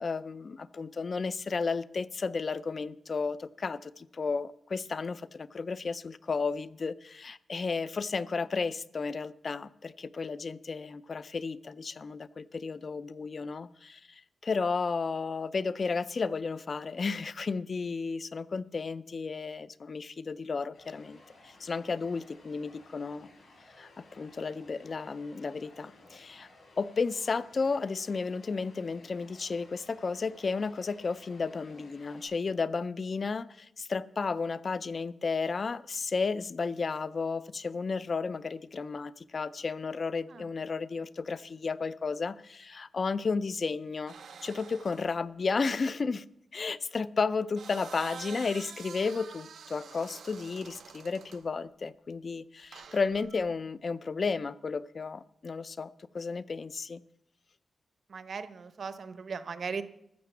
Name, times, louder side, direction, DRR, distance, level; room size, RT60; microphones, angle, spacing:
voice 1, 0.0-23.3 23.8-26.5 26.8-44.1 44.4-46.2 46.5-57.0, left 4 dB, 40° left, 17 dB, 0.4 m, -33 dB
sound 1, 20.7-32.2, left 2 dB, 65° left, 5.2 m, -57 dB
sound 2, 44.1-45.2 47.3-51.5 52.7-53.5, right 6 dB, 85° right, 1.0 m, -47 dB
voice 2, 58.1-59.8, right 5 dB, 50° right, 13 dB, 0.7 m, -38 dB
13.0 x 7.5 x 7.1 m, 0.76 s
wide cardioid pair, 165°, 0 cm